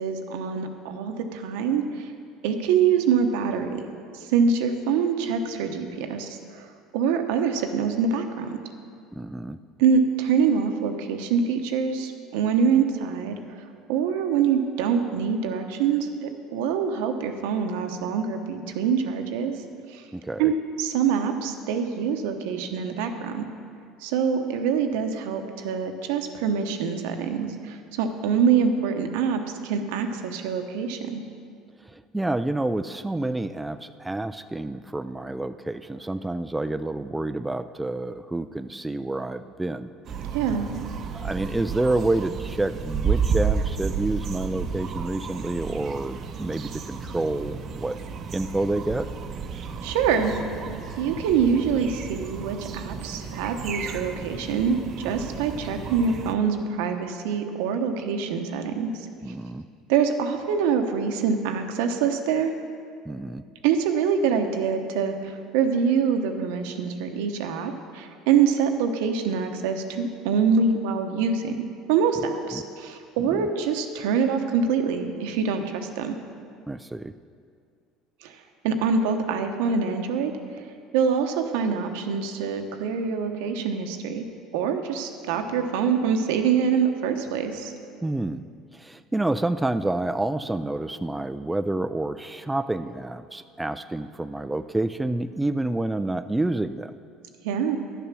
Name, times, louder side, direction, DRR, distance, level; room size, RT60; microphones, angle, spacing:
voice 1, 0.0-2.1 2.4-3.8 4.1-8.6 9.8-13.4 13.9-19.5 19.9-20.0 20.4-23.5 24.0-31.2 40.3-40.7 49.8-50.4 51.0-58.9 59.9-62.5 63.6-76.2 78.2-78.4 78.6-80.3 80.9-84.3 84.5-87.7 97.4-97.8, right 6 dB, 85° right, 6 dB, 0.9 m, -25 dB
voice 2, 9.1-9.6 20.1-20.5 31.8-39.9 41.1-48.0 48.3-49.1 59.2-59.6 63.1-63.4 72.5-72.6 73.2-73.5 76.7-77.1 88.0-88.4 88.7-96.9, right 2 dB, 10° right, 10 dB, 0.3 m, -28 dB
sound 1, 40.0-56.3, right 6 dB, 45° right, 0.7 m, -32 dB
11.0 x 6.9 x 6.1 m, 2.3 s
supercardioid pair, 115°, 0 cm